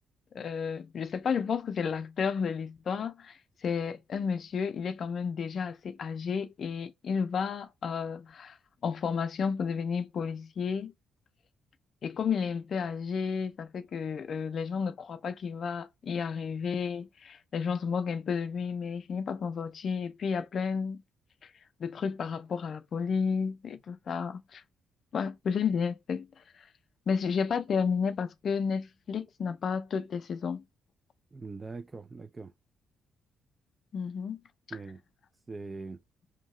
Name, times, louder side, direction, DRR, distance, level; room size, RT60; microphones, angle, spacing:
voice 1, 0.3-8.6 8.8-10.9 12.0-21.0 21.8-24.6 25.1-26.3 27.1-30.6 33.9-34.4, left 6 dB, 55° left, 0.4 m, -32 dB
voice 2, 31.3-32.5 34.7-35.0 35.5-36.0, right 3 dB, 25° right, 0.3 m, -42 dB
2.7 x 2.2 x 3.1 m
cardioid pair, 90°, 0 cm